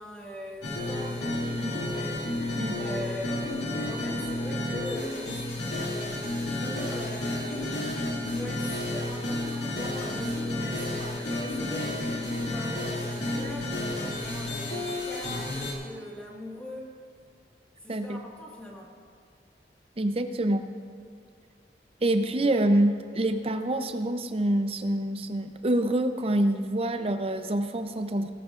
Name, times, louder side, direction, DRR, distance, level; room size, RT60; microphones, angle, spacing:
voice 1, 0.0-2.1 2.8-6.0 6.4-12.1 12.3-16.9 17.8-19.0, left 1 dB, 5° left, -3 dB, 1.7 m, -41 dB
sound 1, 0.6-15.7, left 1 dB, 75° left, 2.3 m, -31 dB
voice 2, 17.9-18.2 20.0-20.7 22.0-28.3, right 1 dB, 35° right, 7 dB, 0.6 m, -26 dB
17.5 x 14.0 x 2.5 m, 2.3 s
head